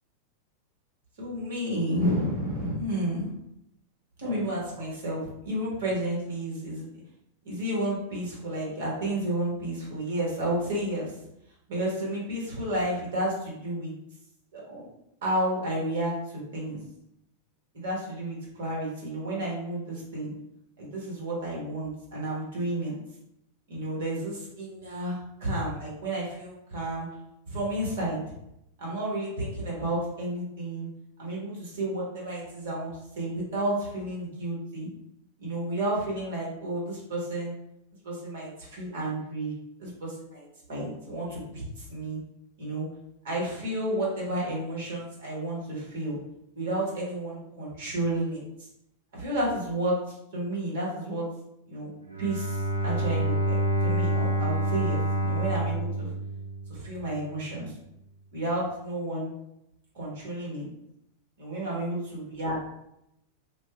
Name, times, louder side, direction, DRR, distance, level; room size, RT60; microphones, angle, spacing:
voice 1, 1.2-3.3 4.2-6.9 7.4-11.2 11.7-13.9 14.5-14.8 15.2-16.8 17.7-20.3 20.8-22.9 23.7-27.1 27.5-28.2 28.8-30.9 31.2-34.9 35.4-37.5 38.0-39.5 39.8-42.2 42.6-42.9 43.2-46.2 46.5-48.7 49.1-51.3 51.7-51.9 52.2-53.6 53.8-56.1 56.7-57.7 58.3-59.3 59.9-60.7 61.4-62.6, right 1 dB, 55° right, -5 dB, 1.3 m, -31 dB
Bowed string instrument, 52.0-57.0, right 1 dB, 85° right, 0.4 m, -27 dB
2.4 x 2.2 x 3.3 m, 0.82 s
figure-of-eight pair, 90°, 0 cm